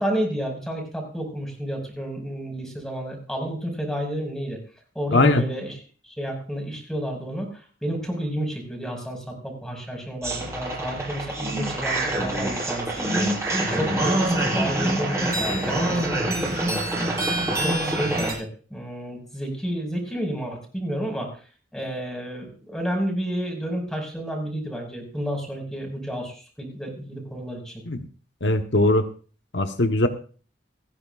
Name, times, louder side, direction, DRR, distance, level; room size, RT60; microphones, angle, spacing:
voice 1, 0.0-4.6 5.0-5.7 6.0-13.4 13.7-17.1 17.6-21.4 21.7-27.7, equal, 5° left, 2 dB, 5.4 m, -31 dB
voice 2, 5.1-5.4 27.9-28.0 28.4-29.0 29.5-30.1, left 2 dB, 75° left, 6 dB, 1.2 m, -20 dB
sound 1, 10.2-18.3, right 1 dB, 15° right, 6.8 m, -25 dB
28.5 x 10.5 x 2.5 m, 0.39 s
head